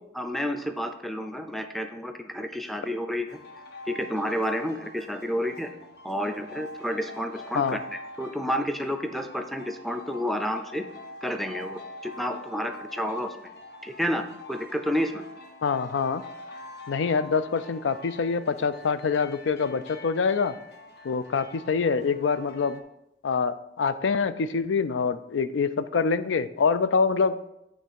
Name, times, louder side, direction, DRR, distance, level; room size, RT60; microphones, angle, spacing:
voice 1, 0.1-3.4 3.9-5.7 6.0-10.8 11.2-13.5 13.8-15.2, equal, ahead, 6 dB, 0.4 m, -30 dB
sound 1, 3.3-22.8, left 2 dB, 60° left, 0.8 m, -45 dB
voice 2, 15.6-16.2 16.9-20.5 21.0-22.8 23.2-27.4, left 5 dB, 90° left, 13 dB, 0.4 m, -25 dB
8.1 x 3.3 x 6.4 m, 0.85 s
head